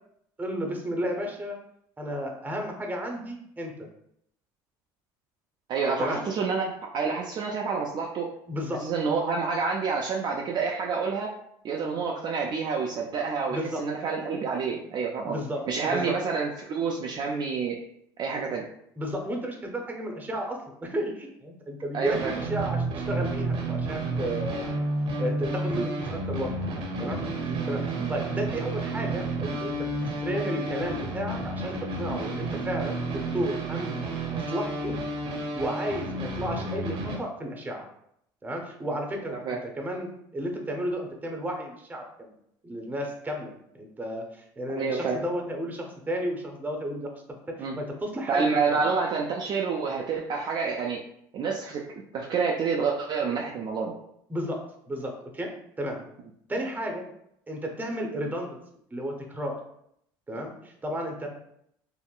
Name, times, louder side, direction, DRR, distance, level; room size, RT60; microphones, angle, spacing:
voice 1, 0.4-1.6 2.0-3.7 6.0-6.2 8.5-8.9 13.5-13.8 15.3-16.1 19.0-24.7 25.2-26.5 27.0-29.9 30.2-35.0 35.5-37.8 38.4-39.4 39.8-42.3 42.6-47.1 47.6-48.9 54.3-54.6 54.9-55.5 55.8-56.0 56.5-57.0 57.5-58.6 58.9-59.6 60.3-61.3, equal, 15° right, 2 dB, 0.7 m, -33 dB
voice 2, 5.7-8.3 8.8-11.3 11.6-15.4 15.7-17.8 18.2-18.6 21.9-22.3 25.8-25.9 27.5-28.1 39.3-39.6 44.7-45.2 47.6-47.8 48.3-51.0 51.3-51.8 52.1-53.9, right 5 dB, 45° right, -1 dB, 0.4 m, -28 dB
sound 1, 22.0-37.2, right 2 dB, 60° right, 0.8 m, -31 dB
3.6 x 2.1 x 2.4 m, 0.73 s
supercardioid pair, 85°, 10 cm